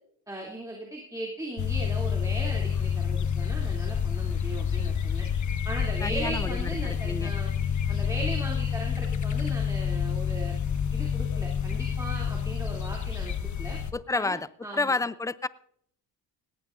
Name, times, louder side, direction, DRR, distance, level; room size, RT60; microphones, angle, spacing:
voice 1, 0.3-5.3 5.6-7.5 7.9-10.6 10.9-13.8 14.1-14.4 14.6-15.0, right 1 dB, 10° right, 2.9 m, -38 dB
sound 1, 1.6-13.9, left 7 dB, 45° left, 1.3 m, -28 dB
voice 2, 6.0-7.3 13.9-15.5, left 3 dB, 10° left, 0.4 m, -30 dB
18.0 x 16.5 x 2.6 m
cardioid pair, 95°, 40 cm